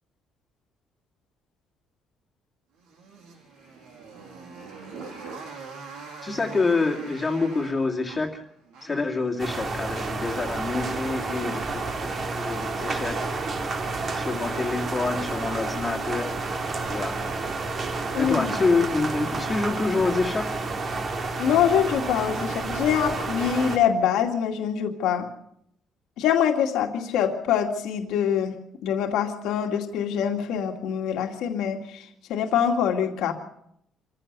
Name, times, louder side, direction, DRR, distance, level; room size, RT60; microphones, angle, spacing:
Motorcycle, 2.8-9.2, right 4 dB, 85° right, 7.5 m, -42 dB
voice 1, 6.2-8.3 8.8-13.2 14.2-16.4 16.9-17.2 18.2-20.5, left 3 dB, 15° left, -1 dB, 2.4 m, -27 dB
sound 1, 9.4-23.8, right 3 dB, 30° right, 2.2 m, -30 dB
voice 2, 18.1-18.6 21.4-25.3 26.2-28.6 28.8-33.3, left 8 dB, 80° left, 3 dB, 2.3 m, -24 dB
26.0 x 15.5 x 6.8 m, 0.74 s
cardioid pair, 175°, 0 cm